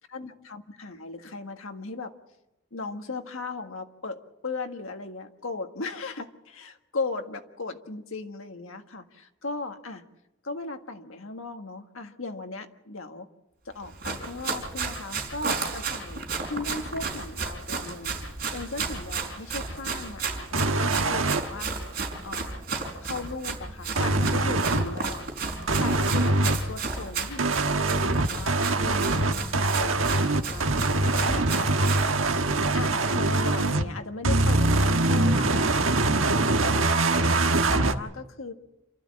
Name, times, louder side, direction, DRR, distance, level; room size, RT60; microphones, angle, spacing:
voice 1, 0.1-2.1 2.7-10.0 10.4-13.3 13.6-18.2 18.5-21.7 22.2-22.6 23.0-25.2 25.7-31.7 32.7-34.7 35.0-37.1 37.7-38.5, left 3 dB, 85° left, 6 dB, 1.7 m, -37 dB
Run, 13.8-32.1, right 4 dB, 50° right, 4.7 m, -33 dB
sound 1, 20.5-21.4 24.0-24.9 25.7-26.6 27.4-33.9 34.2-37.9, right 2 dB, 85° right, 1.4 m, -23 dB
28.0 x 13.0 x 8.6 m, 0.92 s
head